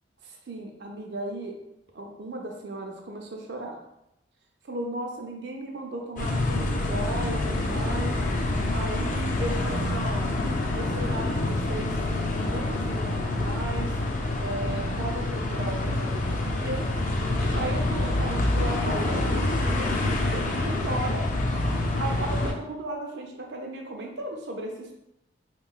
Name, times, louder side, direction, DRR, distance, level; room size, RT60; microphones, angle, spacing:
voice 1, 0.2-1.5 1.9-3.8 4.6-10.2 10.7-11.9 12.5-13.9 14.4-16.8 17.3-21.2 22.0-24.9, right 2 dB, 60° right, 1 dB, 0.5 m, -35 dB
sound 1, 6.2-22.5, left 2 dB, 40° left, 0.4 m, -27 dB
3.6 x 3.0 x 2.3 m, 0.81 s
head